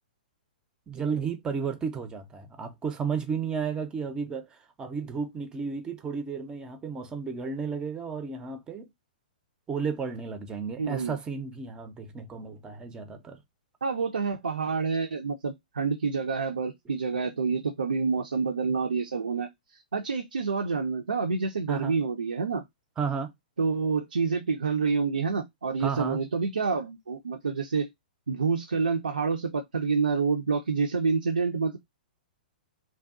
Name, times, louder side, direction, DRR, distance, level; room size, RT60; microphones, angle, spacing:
voice 1, 0.9-8.9 9.7-13.4 21.7-22.0 23.0-23.3 25.8-26.2, right 5 dB, 15° right, 0.4 m, -33 dB
voice 2, 10.8-11.2 13.8-22.6 23.6-27.9 28.3-31.8, right 5 dB, 75° right, 0.4 m, -28 dB
2.5 x 2.2 x 2.3 m
figure-of-eight pair, 110°, 5 cm